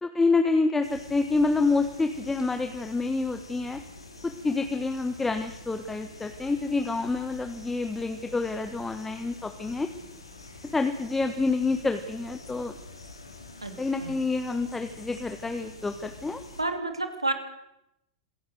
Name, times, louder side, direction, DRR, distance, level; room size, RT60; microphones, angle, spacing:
voice 1, 0.0-3.8 4.2-9.9 10.6-12.8 13.8-16.4, left 3 dB, 10° left, 7 dB, 1.4 m, -27 dB
sound 1, 0.8-16.6, left 2 dB, 85° left, 3.5 m, -47 dB
voice 2, 16.6-17.3, right 2 dB, 85° right, 7 dB, 2.6 m, -29 dB
26.5 x 16.0 x 6.6 m, 0.88 s
figure-of-eight pair, 95°, 3 cm